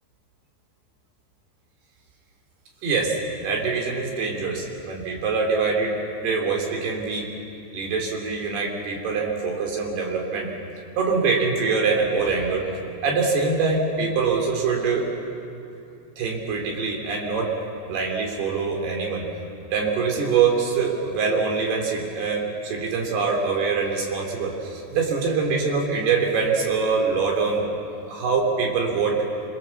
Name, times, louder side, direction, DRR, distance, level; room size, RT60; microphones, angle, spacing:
voice 1, 2.8-7.3 7.7-10.5 11.0-15.1 16.2-17.5 17.8-19.3 19.7-27.6 28.1-29.2, right 4 dB, 65° right, 0 dB, 5.0 m, -24 dB
26.5 x 22.5 x 7.1 m, 2.6 s
omnidirectional pair, 5.2 m